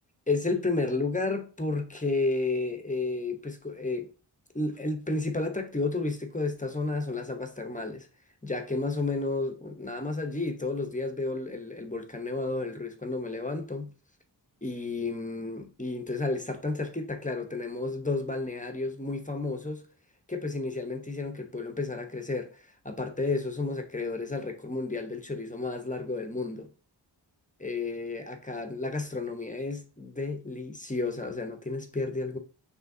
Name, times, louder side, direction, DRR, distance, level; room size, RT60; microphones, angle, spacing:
voice 1, 0.3-4.1 4.5-8.1 8.4-13.9 14.6-19.9 20.3-26.7 27.6-32.4, left 3 dB, 15° left, 0.8 m, -32 dB
5.4 x 3.1 x 2.6 m
wide cardioid pair, 55°, 44 cm